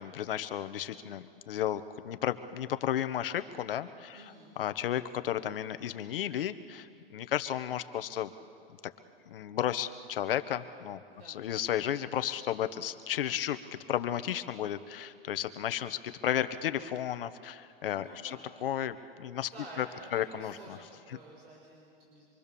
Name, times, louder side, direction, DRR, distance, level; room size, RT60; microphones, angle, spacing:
voice 1, 0.0-4.2 4.6-8.3 9.3-11.0 11.3-19.5 19.8-19.9 20.1-20.8, left 10 dB, 70° left, 11 dB, 1.2 m, -33 dB
voice 2, 4.1-4.5 11.1-11.4 17.9-18.4 19.4-22.2, right 2 dB, 85° right, -2 dB, 5.5 m, -50 dB
26.0 x 24.0 x 7.0 m, 2.5 s
hypercardioid pair, 155°, 29 cm